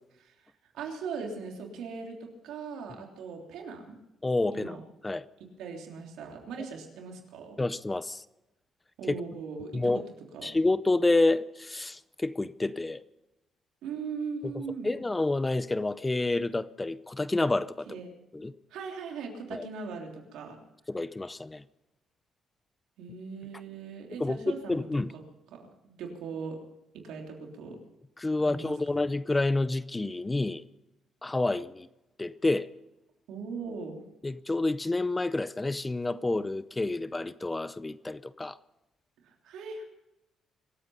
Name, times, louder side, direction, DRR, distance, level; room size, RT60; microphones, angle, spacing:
voice 1, 0.2-4.0 4.5-4.8 5.6-7.6 9.0-10.0 10.3-10.5 13.8-14.9 17.9-18.1 18.7-20.6 23.0-25.2 25.5-26.6 27.0-27.8 28.4-28.7 33.3-34.0 39.2-39.8, right 5 dB, 85° right, 3.3 m, -39 dB
voice 2, 4.2-4.8 5.0-5.2 7.6-8.2 9.1-9.2 9.7-10.0 10.4-13.0 14.4-14.5 14.8-17.9 18.3-18.5 19.5-19.7 20.9-21.6 24.2-25.1 28.2-30.6 31.2-31.9 32.2-32.7 34.2-38.6, left 2 dB, 20° left, 0.6 m, -28 dB
25.0 x 8.8 x 5.6 m
cardioid pair, 90°, 0 cm